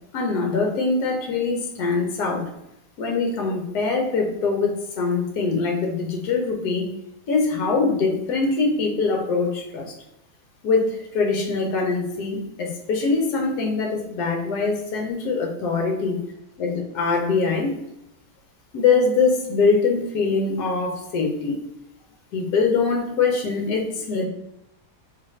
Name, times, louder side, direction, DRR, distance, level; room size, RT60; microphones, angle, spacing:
voice 1, 0.1-2.5 3.0-6.9 7.3-9.9 10.6-16.2 16.6-17.7 18.7-21.6 22.3-24.2, left 4 dB, 75° left, 1 dB, 1.2 m, -23 dB
3.9 x 2.5 x 3.1 m, 0.84 s
omnidirectional pair, 1.8 m